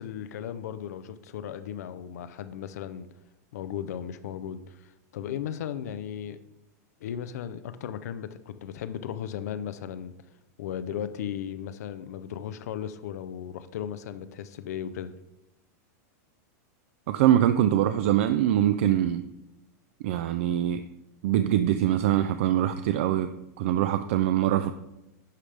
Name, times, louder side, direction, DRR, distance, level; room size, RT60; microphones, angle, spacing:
voice 1, 0.0-3.1 3.5-6.4 7.0-10.1 10.6-15.1, left 9 dB, 70° left, 12 dB, 0.5 m, -36 dB
voice 2, 17.1-19.2 20.0-20.8 21.2-23.3 23.6-24.7, right 11 dB, 45° right, 10 dB, 0.3 m, -23 dB
11.5 x 5.0 x 3.4 m, 0.91 s
supercardioid pair, 180°, 9 cm